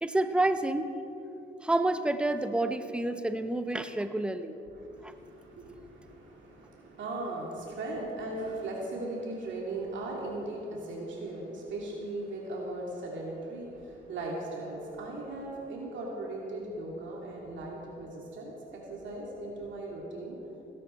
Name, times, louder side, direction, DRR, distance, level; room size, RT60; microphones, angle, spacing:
voice 1, 0.0-0.9 1.6-4.6 5.0-5.1, right 2 dB, 5° right, 10 dB, 0.7 m, -29 dB
voice 2, 4.7-20.4, right 2 dB, 70° right, -2 dB, 2.5 m, -38 dB
17.5 x 11.5 x 4.3 m, 2.8 s
cardioid pair, 90°, 20 cm